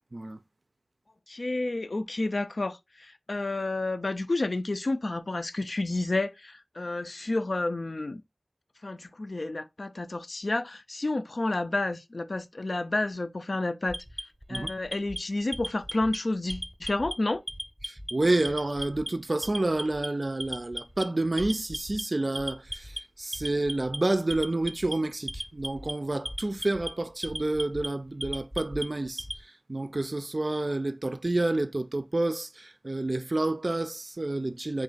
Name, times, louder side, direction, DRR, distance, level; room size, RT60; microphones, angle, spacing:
voice 1, 1.3-8.2 8.8-14.0 14.5-17.4, left 2 dB, 70° left, 0.4 m, -30 dB
Alarm, 13.9-15.2 15.5-16.2 16.5-17.1 17.5-18.1 18.4-19.1 19.4-20.1 20.4-21.0 21.4-22.0 22.4-23.0 23.3-24.0 24.3-24.9 25.3-25.9 26.3-26.9 27.2-27.9 28.2-29.4, equal, 10° right, 0.8 m, -35 dB
voice 2, 17.8-29.3 29.7-34.8, right 2 dB, 55° right, 0.4 m, -29 dB
3.8 x 2.4 x 3.8 m
wide cardioid pair, 45°, 0 cm